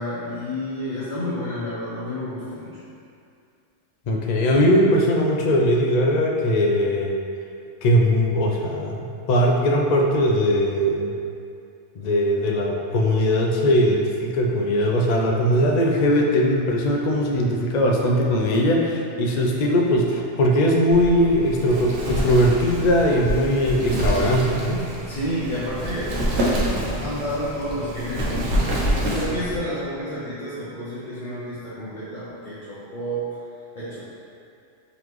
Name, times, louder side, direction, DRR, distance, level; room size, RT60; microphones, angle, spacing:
voice 1, 0.0-2.8 19.3-19.6 25.1-26.3 26.6-28.5 29.1-33.2 33.7-34.0, equal, 45° left, -10 dB, 0.7 m, -30 dB
voice 2, 4.1-7.1 7.8-11.1 12.0-24.8, equal, 85° left, -1 dB, 0.3 m, -20 dB
Wind, 20.9-29.6, equal, 85° right, 1.0 m, -26 dB
3.9 x 3.3 x 3.0 m, 2.5 s
omnidirectional pair, 1.3 m